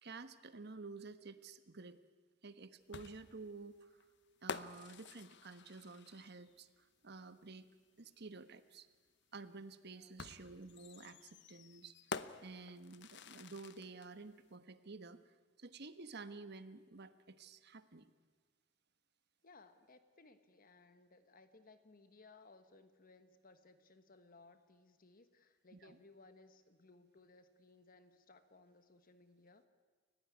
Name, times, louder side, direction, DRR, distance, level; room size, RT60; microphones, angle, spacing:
voice 1, 0.0-2.0 2.4-4.0 4.4-7.7 8.0-8.9 9.3-12.0 12.4-18.1 25.7-26.0, right 3 dB, 60° right, 12 dB, 1.3 m, -52 dB
sound 1, 2.9-6.6 8.1-8.2 10.2-14.1, left 5 dB, 65° left, 0.9 m, -49 dB
voice 2, 9.9-10.2 19.4-29.7, left 3 dB, 45° left, 10 dB, 1.3 m, -63 dB
29.5 x 15.5 x 9.6 m, 1.4 s
head